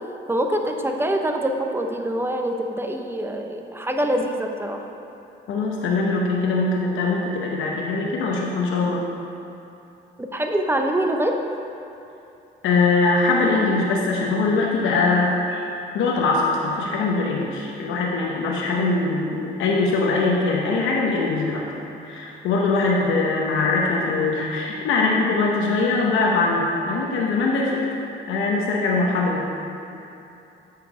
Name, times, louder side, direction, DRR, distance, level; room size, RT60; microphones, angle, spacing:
voice 1, 0.3-4.9 10.2-11.4, right 1 dB, 10° right, 3 dB, 0.7 m, -24 dB
voice 2, 5.5-9.0 12.6-15.6 15.9-21.6 22.0-29.5, left 3 dB, 85° left, -2 dB, 0.8 m, -22 dB
8.3 x 4.6 x 4.9 m, 2.7 s
cardioid pair, 90°, 20 cm